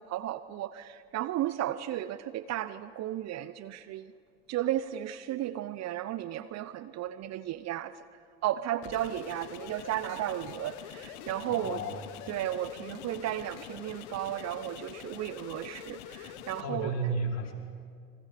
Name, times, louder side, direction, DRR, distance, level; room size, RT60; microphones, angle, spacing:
voice 1, 0.0-4.1 4.5-7.9 8.4-11.8 12.3-16.9, right 13 dB, 55° right, 15 dB, 0.8 m, -34 dB
sound 1, 8.8-16.6, left 10 dB, 75° left, 1.2 m, -45 dB
voice 2, 11.5-12.0 16.6-17.5, right 2 dB, 55° left, -2 dB, 5.3 m, -32 dB
29.0 x 23.5 x 5.1 m, 2.2 s
hypercardioid pair, 55°, 32 cm